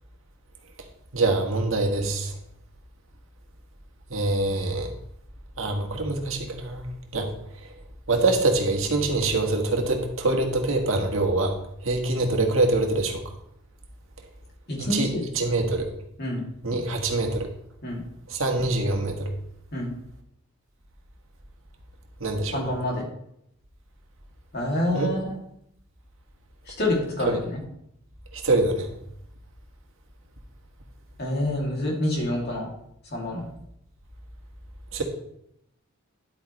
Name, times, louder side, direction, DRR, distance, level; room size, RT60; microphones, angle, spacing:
voice 1, 1.1-2.3 4.1-4.9 5.6-7.3 8.1-11.5 11.8-13.2 14.8-15.1 15.3-15.9 16.6-17.5 18.3-19.3 22.2-22.6 24.9-25.1 27.2-27.3 28.3-28.9 34.9-35.0, right 2 dB, 70° right, 2 dB, 1.7 m, -24 dB
voice 2, 14.7-15.6 16.2-16.4 17.8-18.0 19.7-19.9 22.5-23.1 24.5-25.4 26.7-27.6 31.2-32.7 33.1-33.5, left 1 dB, 50° left, -2 dB, 2.8 m, -27 dB
10.5 x 8.9 x 3.2 m, 0.74 s
head